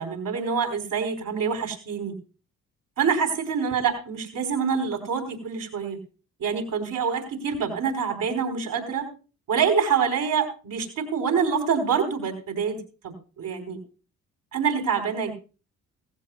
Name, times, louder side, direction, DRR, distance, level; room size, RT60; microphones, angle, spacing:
voice 1, 0.0-2.2 3.0-6.0 6.4-9.1 9.5-12.8 13.0-13.8 14.5-15.3, right 6 dB, 70° right, 4 dB, 3.9 m, -26 dB
16.0 x 16.0 x 2.3 m, 0.35 s
supercardioid pair, 55°, 35 cm